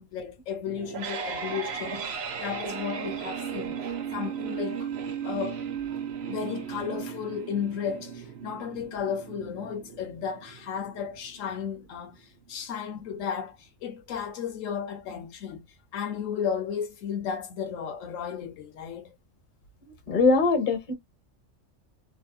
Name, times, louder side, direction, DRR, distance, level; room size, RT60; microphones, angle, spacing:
voice 1, 0.0-4.9 5.2-5.6 6.3-15.7 15.9-19.1, left 7 dB, 80° left, 1.0 m, -34 dB
sound 1, 0.7-11.7, right 7 dB, 60° right, 0.9 m, -36 dB
voice 2, 19.8-20.9, left 3 dB, 40° left, 1.0 m, -23 dB
3.2 x 2.5 x 2.2 m
omnidirectional pair, 1.4 m